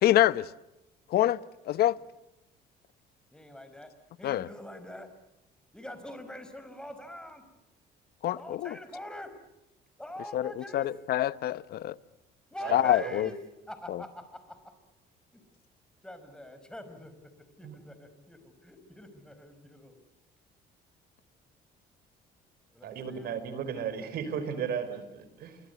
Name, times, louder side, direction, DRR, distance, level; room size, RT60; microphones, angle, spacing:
voice 1, 0.0-0.5 1.1-2.0 4.2-4.5 8.2-8.7 10.3-12.0 12.7-13.3 13.9-14.0, left 13 dB, 65° left, 0.9 m, -26 dB
voice 2, 3.3-3.9 4.2-5.1 5.7-7.4 8.3-9.3 10.0-10.9 12.5-13.4 13.7-14.7 15.3-15.4 16.0-20.0 22.7-23.4, left 1 dB, 5° left, 5.3 m, -44 dB
voice 3, 12.6-13.3 17.6-17.7 22.8-25.6, right 7 dB, 65° right, 5.1 m, -35 dB
28.0 x 25.0 x 8.2 m
cardioid pair, 110°, 17 cm